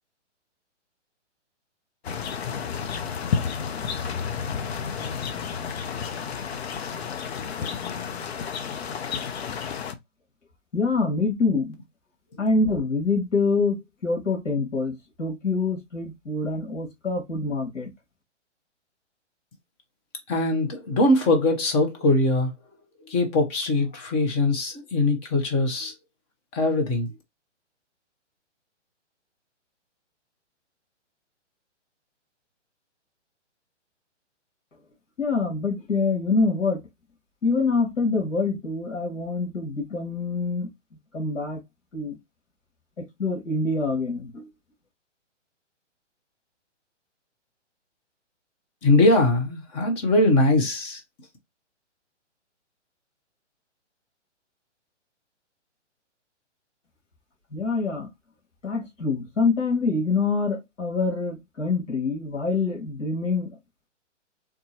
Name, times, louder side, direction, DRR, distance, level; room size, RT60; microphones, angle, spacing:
sound 1, 2.0-9.9, left 6 dB, 60° left, 0.7 m, -31 dB
voice 1, 10.7-11.8 12.4-17.9 35.2-36.8 37.4-40.7 41.1-41.6 41.9-42.2 43.0-44.5 57.5-58.1 58.6-63.5, left 3 dB, 85° left, 1.9 m, -25 dB
voice 2, 20.3-22.5 23.1-25.9 26.5-27.1 48.8-51.0, left 2 dB, 15° left, 0.7 m, -21 dB
3.6 x 2.7 x 2.7 m
hypercardioid pair, 145°, 36 cm